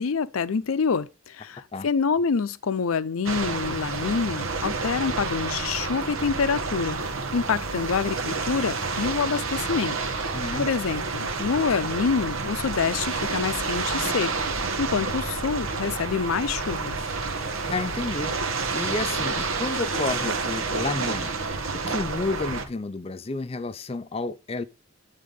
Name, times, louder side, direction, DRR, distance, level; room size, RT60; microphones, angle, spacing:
voice 1, 0.0-7.0 7.3-10.0 10.6-14.3 14.8-17.0, left 5 dB, 85° left, 0.5 m, -26 dB
sound 1, 3.2-22.6, right 4 dB, 80° right, 1.3 m, -29 dB
sound 2, 7.0-19.3, right 3 dB, 50° right, 0.9 m, -47 dB
voice 2, 10.3-10.7 17.7-18.4 18.7-21.4 21.7-24.6, left 3 dB, 30° left, 0.4 m, -30 dB
9.5 x 3.7 x 5.1 m
head